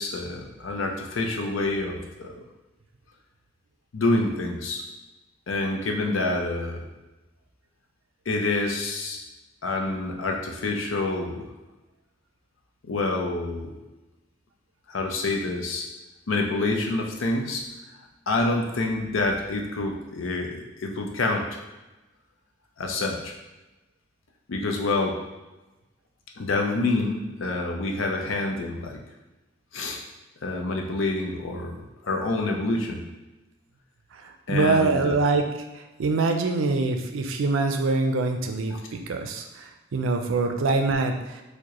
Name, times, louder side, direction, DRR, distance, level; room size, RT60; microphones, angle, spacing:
voice 1, 0.0-2.3 3.9-4.8 5.5-6.8 8.3-9.2 9.6-11.5 12.8-13.7 14.9-15.9 16.3-17.6 18.3-21.6 22.8-23.3 24.5-25.2 26.4-29.0 29.7-30.0 30.4-31.8 32.0-33.0 34.5-35.2, left 2 dB, 80° left, 2 dB, 0.6 m, -27 dB
voice 2, 34.1-35.5 35.7-41.4, right 3 dB, 85° right, 5 dB, 0.4 m, -24 dB
4.7 x 2.2 x 2.9 m, 1.1 s
head